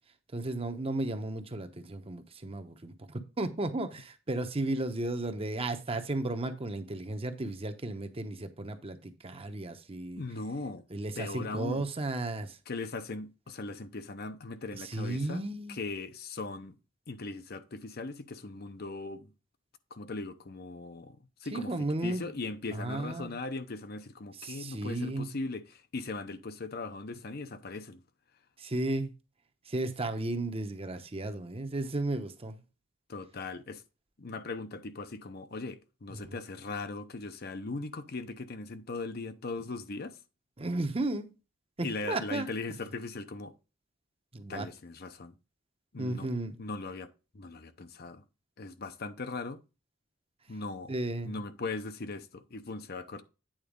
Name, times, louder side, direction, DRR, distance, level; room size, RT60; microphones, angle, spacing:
voice 1, 0.3-10.2 10.9-12.6 14.7-15.8 21.5-22.3 22.7-23.3 24.3-25.3 28.6-29.1 29.7-32.6 36.1-36.2 40.6-41.3 41.8-42.5 44.3-44.7 46.0-46.6 50.9-51.4, right 2 dB, 30° right, 0.9 m, -34 dB
voice 2, 10.2-10.8 11.2-11.9 12.7-16.8 17.1-19.3 19.9-21.7 22.0-28.0 33.1-33.8 34.2-40.2 41.8-43.5 44.5-45.4 45.9-46.3 46.6-47.1 47.3-48.2 48.6-49.6 50.5-50.9 51.2-53.2, left 3 dB, 55° left, 0.8 m, -39 dB
8.9 x 4.0 x 5.2 m
head